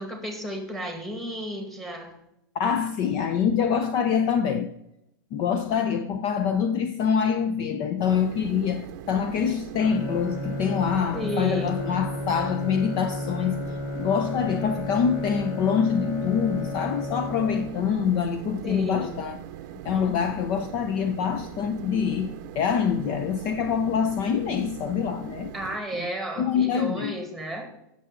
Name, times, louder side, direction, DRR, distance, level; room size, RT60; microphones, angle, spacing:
voice 1, 0.0-2.1 11.1-11.8 18.6-19.2 25.5-27.7, equal, ahead, 1.9 m, -32 dB
voice 2, 2.5-4.7 5.3-13.6 14.0-19.4 19.8-25.5 26.0-26.1 26.4-27.2, left 7 dB, 35° left, 0.6 m, -25 dB
sound 1, 8.1-25.8, right 11 dB, 50° right, 0.7 m, -41 dB
Bowed string instrument, 9.8-18.1, left 1 dB, 55° left, 1.6 m, -33 dB
16.0 x 6.9 x 3.8 m
supercardioid pair, 150°, 12 cm